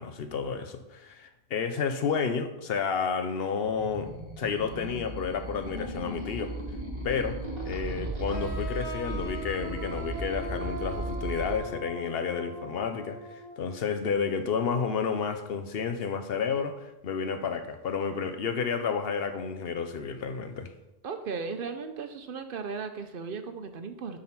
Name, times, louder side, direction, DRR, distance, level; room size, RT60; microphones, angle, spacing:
voice 1, 0.0-6.5 7.0-7.4 7.7-13.2 13.6-20.7, left 6 dB, 70° left, 8 dB, 0.9 m, -31 dB
sound 1, 3.6-11.5, right 1 dB, 25° right, 1.6 m, -36 dB
sound 2, 8.3-13.8, equal, 20° left, 2.2 m, -40 dB
voice 2, 21.0-24.2, right 5 dB, 60° right, 8 dB, 0.8 m, -36 dB
7.5 x 3.9 x 5.8 m, 0.95 s
omnidirectional pair, 1.0 m